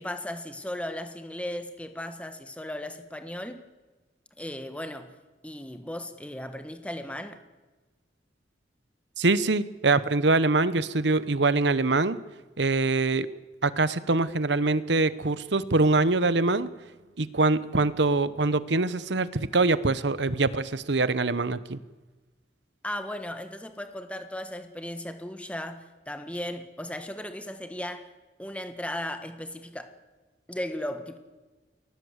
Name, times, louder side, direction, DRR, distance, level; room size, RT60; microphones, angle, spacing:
voice 1, 0.0-3.7 4.4-5.1 5.4-7.4 22.8-28.1 28.4-29.9 30.5-31.2, left 1 dB, 5° left, 8 dB, 1.6 m, -36 dB
voice 2, 9.2-12.2 12.6-13.3 13.6-16.7 17.2-21.8, right 3 dB, 80° right, 15 dB, 1.1 m, -24 dB
29.0 x 19.5 x 8.1 m, 1.2 s
head